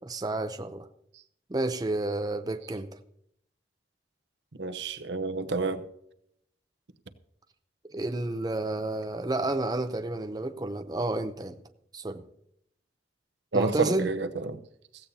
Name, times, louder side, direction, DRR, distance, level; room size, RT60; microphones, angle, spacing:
voice 1, 0.0-0.9 1.5-2.9 7.9-11.6 11.9-12.2 13.5-14.1, right 2 dB, 20° right, 0.6 m, -30 dB
voice 2, 4.6-5.8 13.5-14.6, right 3 dB, 85° right, 0.9 m, -29 dB
15.5 x 15.5 x 2.8 m
head